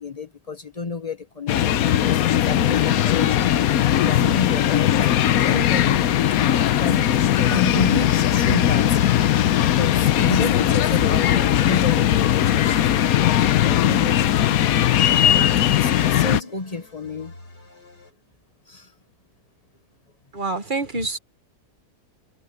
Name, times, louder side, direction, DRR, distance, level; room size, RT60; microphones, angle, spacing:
voice 1, 0.0-3.6 4.0-5.1 5.4-6.5 6.8-9.0 9.7-13.3 13.6-14.8 15.2-17.3 18.7-18.9, left 3 dB, 30° left, 0.9 m, -31 dB
sound 1, 1.5-16.4, left 11 dB, 65° left, 1.1 m, -19 dB
sound 2, 2.1-18.1, left 2 dB, 80° left, 7.0 m, -49 dB
voice 2, 20.3-21.2, right 3 dB, 35° right, 1.2 m, -26 dB
omnidirectional pair, 1.8 m